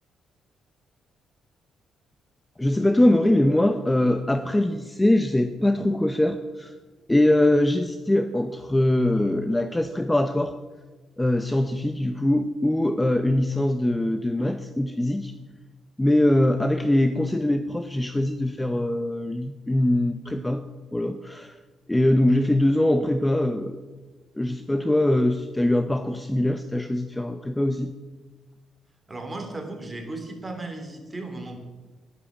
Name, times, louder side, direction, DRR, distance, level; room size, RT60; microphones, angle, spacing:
voice 1, 2.6-6.7 7.1-10.5 11.2-15.3 16.0-21.6 21.9-23.8 24.4-27.9, left 1 dB, 10° left, 9 dB, 0.7 m, -22 dB
voice 2, 29.1-31.6, right 2 dB, 20° right, 4 dB, 3.1 m, -35 dB
11.0 x 11.0 x 7.3 m, 1.3 s
cardioid pair, 90°, 0 cm